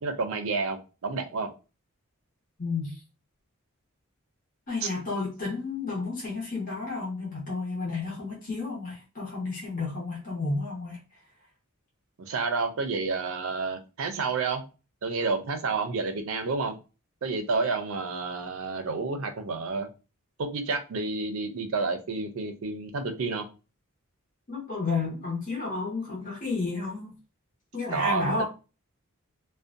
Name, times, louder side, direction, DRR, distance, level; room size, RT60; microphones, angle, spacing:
voice 1, 0.0-1.5 12.2-14.6 15.0-16.8 17.2-19.9 20.4-23.5 27.9-28.4, right 4 dB, 70° right, 0.5 m, -30 dB
voice 2, 2.6-3.0 4.7-11.0 24.5-27.1 27.7-28.4, left 3 dB, 40° left, 0.8 m, -31 dB
2.5 x 2.1 x 2.5 m
head